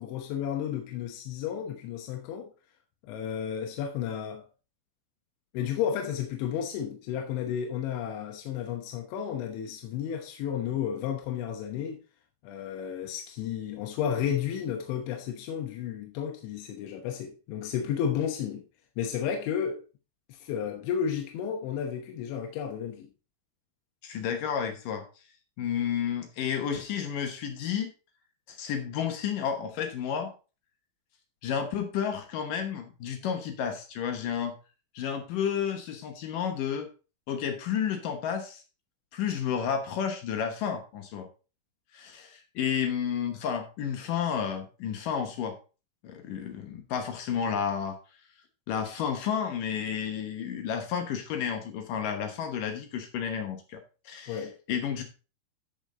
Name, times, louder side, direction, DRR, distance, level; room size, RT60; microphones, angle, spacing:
voice 1, 0.0-2.5 3.0-4.4 5.5-12.0 12.4-18.6 19.0-19.8 20.3-23.1 54.3-54.6, left 8 dB, 85° left, 3.5 m, -32 dB
voice 2, 24.0-25.0 25.6-27.9 28.5-30.3 31.4-34.5 34.9-36.9 37.3-38.6 39.1-41.3 41.9-45.6 46.0-48.0 48.7-53.8 54.1-55.0, left 8 dB, 70° left, 2.1 m, -31 dB
14.0 x 5.2 x 3.8 m
omnidirectional pair, 5.2 m